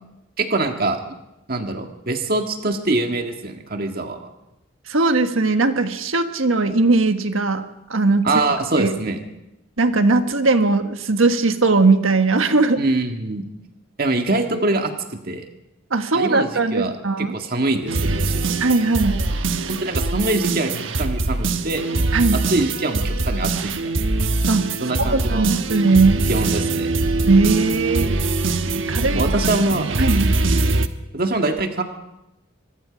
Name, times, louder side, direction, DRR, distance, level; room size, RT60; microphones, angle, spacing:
voice 1, 0.4-1.0 1.5-4.3 8.2-9.2 12.8-13.4 14.0-15.5 16.1-18.5 19.7-21.9 22.5-24.0 24.8-25.5 26.3-26.9 29.1-30.2 31.1-31.8, right 2 dB, 50° right, 5 dB, 1.8 m, -24 dB
voice 2, 4.9-7.6 7.9-8.4 8.8-8.9 9.8-12.8 15.9-17.3 18.6-19.2 22.1-22.4 24.5-24.7 25.1-26.2 27.3-28.1 28.8-29.3 30.0-30.3, right 3 dB, 85° right, 8 dB, 1.5 m, -19 dB
sound 1, 17.9-30.9, right 3 dB, 70° right, 1.2 m, -22 dB
24.5 x 21.0 x 5.1 m, 0.91 s
head